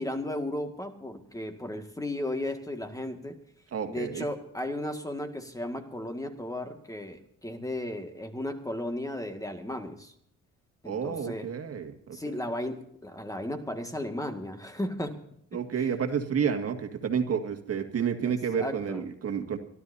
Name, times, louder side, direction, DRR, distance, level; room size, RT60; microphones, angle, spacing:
voice 1, 0.0-3.4 3.9-10.1 10.8-11.5 12.1-15.2 15.8-15.9 18.3-19.0, left 1 dB, 10° left, 6 dB, 2.0 m, -35 dB
voice 2, 3.7-4.3 10.8-11.9 12.3-12.4 15.5-19.6, right 7 dB, 50° right, 5 dB, 2.0 m, -30 dB
27.0 x 13.0 x 2.8 m, 0.69 s
cardioid pair, 90°, 30 cm